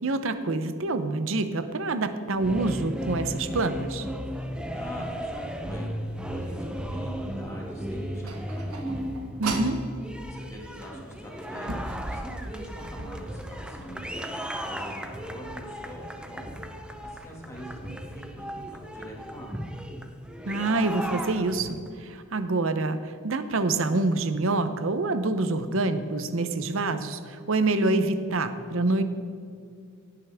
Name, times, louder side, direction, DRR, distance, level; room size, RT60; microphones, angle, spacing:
voice 1, 0.0-4.1 9.4-9.8 20.5-29.0, right 2 dB, 60° right, 10 dB, 0.7 m, -26 dB
sound 1, 2.3-21.9, equal, 5° right, 0.6 m, -35 dB
voice 2, 4.8-5.9 6.3-9.0 10.3-14.3 14.6-16.5 17.0-19.6, equal, 15° left, -2 dB, 2.0 m, -42 dB
sound 2, 8.2-9.8 10.8-10.9 11.4-13.1, right 3 dB, 90° right, 1.3 m, -36 dB
16.5 x 9.6 x 3.5 m, 2.4 s
head